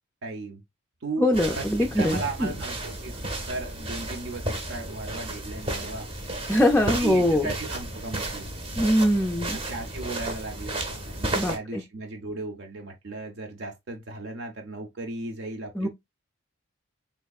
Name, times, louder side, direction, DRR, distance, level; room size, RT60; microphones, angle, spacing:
voice 1, 0.2-0.6 1.0-1.3 1.6-3.2 3.5-6.1 6.8-8.6 9.5-15.9, right 3 dB, 65° right, 0.6 m, -36 dB
voice 2, 1.2-2.5 6.5-7.5 8.8-9.6 11.3-11.8 15.8-15.9, left 1 dB, 5° left, 0.3 m, -22 dB
sound 1, 1.3-11.6, right 1 dB, 25° right, 0.7 m, -33 dB
3.5 x 3.2 x 2.3 m
head